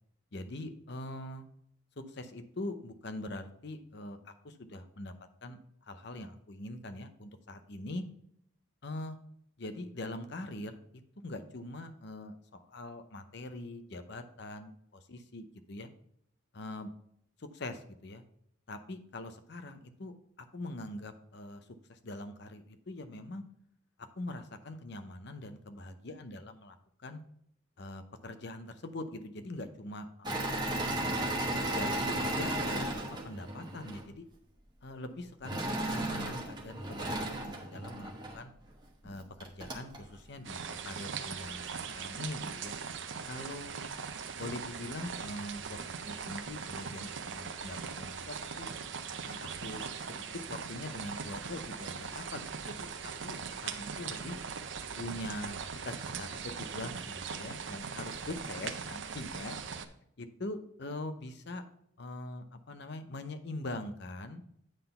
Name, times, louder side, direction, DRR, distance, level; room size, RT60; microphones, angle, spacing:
voice 1, 0.3-1.4 2.0-5.1 5.4-5.6 5.9-8.0 8.8-9.2 9.6-10.8 11.2-14.7 15.1-15.9 16.5-16.9 17.4-18.2 18.7-23.4 24.2-26.8 27.0-27.2 27.8-31.1 31.6-34.3 34.8-38.5 39.0-42.7 43.3-43.8 44.4-48.7 49.2-53.4 53.6-54.4 55.0-55.6 55.8-59.6 60.2-61.6 62.0-64.4, left 1 dB, 55° left, 9 dB, 0.7 m, -43 dB
Engine / Mechanisms, 30.2-34.0 35.4-38.4 39.0-39.1 39.4-40.0, right 1 dB, 20° right, 1.1 m, -34 dB
sound 1, 40.4-59.9, right 6 dB, 60° right, 0.6 m, -40 dB
9.1 x 3.9 x 5.5 m, 0.71 s
head